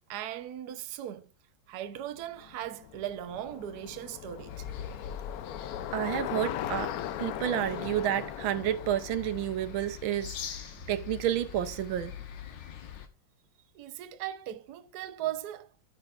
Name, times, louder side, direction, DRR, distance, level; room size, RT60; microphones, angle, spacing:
voice 1, 0.1-1.3 1.7-4.7 13.7-15.7, right 12 dB, 65° right, 1.2 m, -38 dB
Bicycle, 2.3-10.6, left 11 dB, 85° left, 0.8 m, -39 dB
sound 1, 4.5-13.1, left 8 dB, 70° left, 1.7 m, -43 dB
voice 2, 5.9-6.9 7.2-10.6 10.9-12.1, right 11 dB, 85° right, 1.6 m, -30 dB
13.5 x 6.8 x 2.4 m
omnidirectional pair, 2.1 m